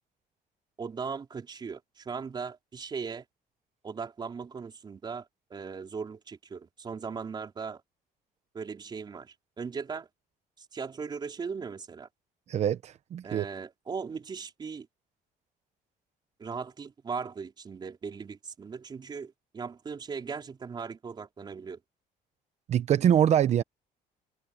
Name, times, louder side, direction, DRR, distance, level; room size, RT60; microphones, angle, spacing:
voice 1, 0.8-3.2 3.8-7.8 8.5-10.1 10.7-12.1 13.2-14.9 16.4-21.8, right 5 dB, 30° right, 4.5 m, -38 dB
voice 2, 12.5-13.5 22.7-23.6, right 10 dB, 45° right, 0.8 m, -24 dB
cardioid pair, 160°, 16 cm